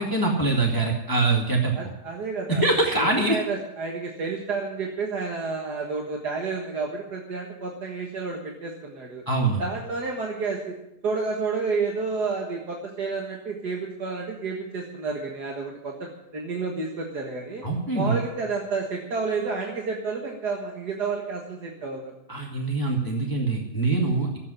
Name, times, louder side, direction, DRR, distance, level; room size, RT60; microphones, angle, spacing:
voice 1, 0.0-1.7 2.5-3.4 9.3-9.6 17.6-18.2 22.3-24.3, right 2 dB, 15° left, -1 dB, 2.0 m, -23 dB
voice 2, 1.7-2.6 3.0-9.2 9.6-10.8 11.0-17.7 17.9-22.1, right 4 dB, 80° right, 0 dB, 2.2 m, -30 dB
13.0 x 8.4 x 9.8 m, 0.88 s
omnidirectional pair, 1.7 m